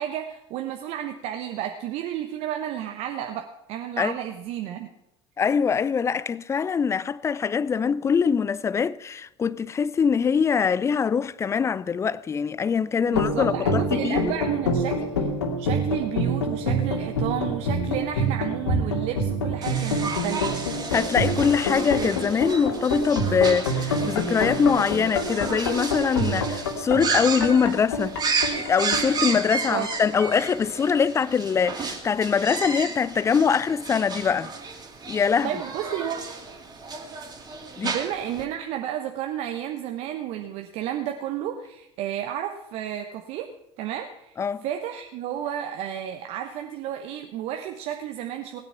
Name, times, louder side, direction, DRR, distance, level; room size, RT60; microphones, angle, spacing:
voice 1, 0.0-4.9 13.1-15.3 15.6-20.7 29.7-29.9 35.4-36.2 37.8-43.5 43.8-44.3 44.6-48.6, right 10 dB, 50° right, 1.0 m, -32 dB
voice 2, 5.4-14.3 20.9-28.2 28.5-34.5 35.1-35.5 37.8-38.0 44.4-44.6, left 6 dB, 20° left, 0.5 m, -23 dB
sound 1, 13.1-29.9, equal, 70° left, 2.5 m, -27 dB
sound 2, 19.6-38.4, right 4 dB, 25° right, 2.6 m, -33 dB
19.0 x 9.5 x 5.9 m
figure-of-eight pair, 70°, 15 cm